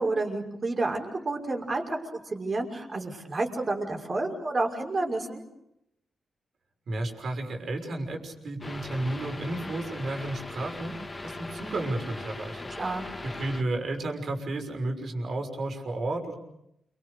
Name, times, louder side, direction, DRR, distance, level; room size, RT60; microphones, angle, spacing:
voice 1, 0.0-2.0 2.3-5.4 12.8-13.1, right 2 dB, 35° right, 2 dB, 5.8 m, -30 dB
voice 2, 6.9-12.6 13.2-16.4, right 2 dB, 60° right, 4 dB, 6.3 m, -32 dB
sound 1, 8.6-13.6, left 2 dB, 25° left, 3.0 m, -39 dB
29.5 x 25.0 x 6.8 m, 0.80 s
cardioid pair, 95°, 0 cm